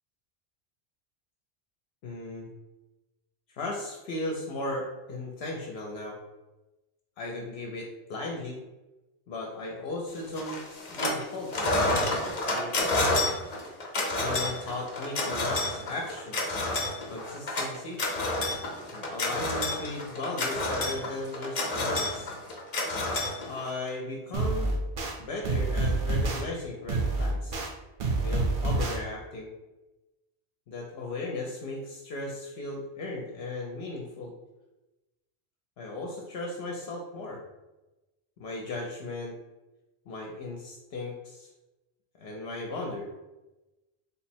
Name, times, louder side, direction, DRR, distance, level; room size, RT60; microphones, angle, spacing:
voice 1, 2.0-2.5 3.5-6.2 7.2-8.6 9.3-10.6 10.9-12.8 14.0-16.5 17.1-18.0 18.9-22.3 23.4-24.7 25.2-27.6 28.2-29.5 30.7-34.3 35.8-37.4 38.4-39.4 40.1-41.5 42.2-43.1, left 2 dB, 75° left, 0 dB, 0.8 m, -36 dB
sound 1, 10.4-11.2 11.5-23.9, left 2 dB, 45° left, 0.7 m, -29 dB
sound 2, 24.3-25.1 25.4-26.4 26.9-27.7 28.0-29.0, right 3 dB, 65° right, 0.8 m, -27 dB
3.5 x 2.0 x 4.3 m, 1.0 s
omnidirectional pair, 1.1 m